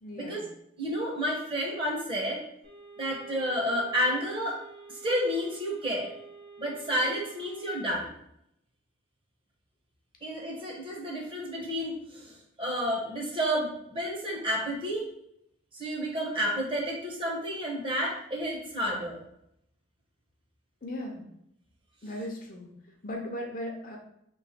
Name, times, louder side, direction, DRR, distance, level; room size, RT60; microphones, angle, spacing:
voice 1, 0.0-0.4 20.8-21.3 22.0-24.0, left 1 dB, 45° left, 1 dB, 0.7 m, -38 dB
voice 2, 0.8-2.4 3.0-4.6 5.0-6.1 6.6-8.1 10.2-15.0 15.7-19.2, equal, 25° right, -2 dB, 0.9 m, -30 dB
sound 1, 2.6-7.8, right 4 dB, 85° right, 1.7 m, -49 dB
3.1 x 3.1 x 4.3 m, 0.77 s
head